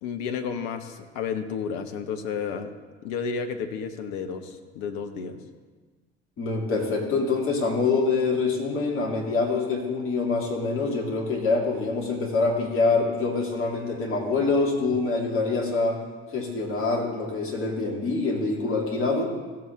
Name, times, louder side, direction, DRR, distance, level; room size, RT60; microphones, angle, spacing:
voice 1, 0.0-2.7 3.0-5.4, left 6 dB, 60° left, 7 dB, 1.0 m, -31 dB
voice 2, 6.4-16.0 16.3-19.3, left 3 dB, 40° left, 0 dB, 2.6 m, -25 dB
15.5 x 7.7 x 3.6 m, 1.4 s
figure-of-eight pair, 55°, 32 cm